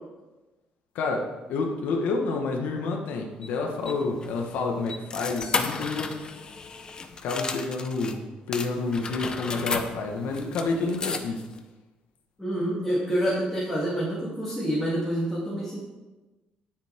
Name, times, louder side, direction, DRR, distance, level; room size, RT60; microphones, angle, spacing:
voice 1, 0.9-6.2 7.2-11.4, left 3 dB, 80° left, 1 dB, 1.5 m, -29 dB
sound 1, 3.4-8.2 8.5-11.6, left 4 dB, 30° left, 0.8 m, -34 dB
voice 2, 12.4-15.8, equal, ahead, -10 dB, 3.0 m, -27 dB
17.5 x 7.3 x 3.7 m, 1.1 s
cardioid pair, 145°, 3 cm